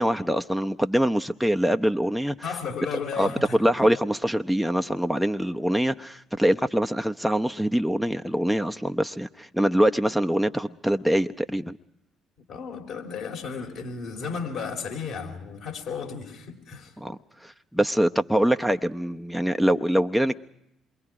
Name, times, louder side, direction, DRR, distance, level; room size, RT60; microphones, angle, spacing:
voice 1, 0.0-2.4 3.2-3.3 3.6-11.8 17.0-20.4, equal, ahead, 0.7 m, -24 dB
voice 2, 2.4-3.6 12.5-16.9, left 5 dB, 60° left, 3.8 m, -34 dB
27.5 x 22.5 x 4.9 m
hypercardioid pair, 50°, 0 cm